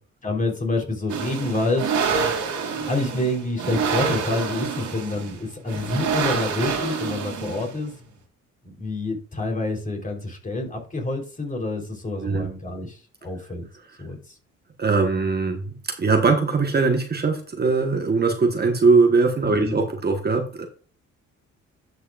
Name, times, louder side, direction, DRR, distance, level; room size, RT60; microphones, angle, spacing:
voice 1, 0.2-1.9 2.8-7.9 8.6-13.7 14.0-14.4 19.5-19.8, left 2 dB, 25° left, 1 dB, 3.7 m, -27 dB
sound 1, 1.1-7.9, right 5 dB, 75° right, 2.9 m, -27 dB
voice 2, 14.8-20.7, right 4 dB, 35° right, 4 dB, 1.4 m, -21 dB
11.5 x 6.7 x 2.5 m, 0.39 s
cardioid pair, 90°, 30 cm